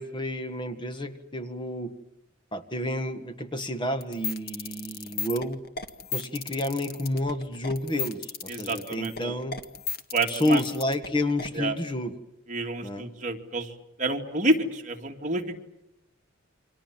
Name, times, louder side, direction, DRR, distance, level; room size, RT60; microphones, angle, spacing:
voice 1, 0.0-1.9 2.5-5.6 6.1-9.6 10.2-12.1 12.8-13.1, left 1 dB, 25° left, 9 dB, 1.6 m, -30 dB
sound 1, 4.0-11.5, left 5 dB, 50° left, 1.7 m, -35 dB
voice 2, 8.5-9.4 10.1-10.6 11.5-11.8 12.5-13.7 14.0-15.6, right 2 dB, 40° right, 3 dB, 2.4 m, -28 dB
29.5 x 25.0 x 7.4 m, 0.84 s
head